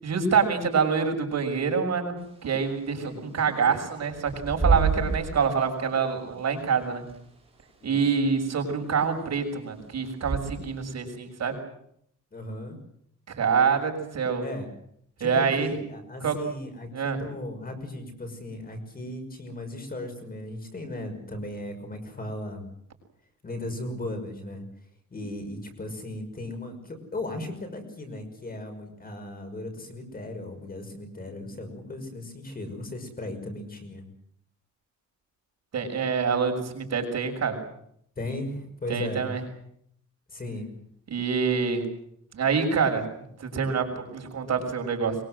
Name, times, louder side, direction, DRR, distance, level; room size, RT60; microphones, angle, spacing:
voice 1, 0.0-7.0 7.8-11.6 13.3-14.4 15.2-15.7 16.2-16.4 16.9-17.2 35.7-37.6 38.9-39.4 41.1-41.8 42.3-43.1 43.4-45.2, right 5 dB, 60° right, 3 dB, 6.5 m, -26 dB
Bird / Wind, 2.2-10.9, right 5 dB, 20° right, 6.5 m, -32 dB
voice 2, 2.9-3.4 7.8-8.0 12.3-12.8 14.4-14.7 15.2-22.7 23.4-24.6 25.1-34.0 38.2-39.3 40.3-40.7, left 1 dB, 30° left, 6 dB, 5.9 m, -37 dB
23.5 x 23.5 x 7.8 m, 0.71 s
wide cardioid pair, 160°, 31 cm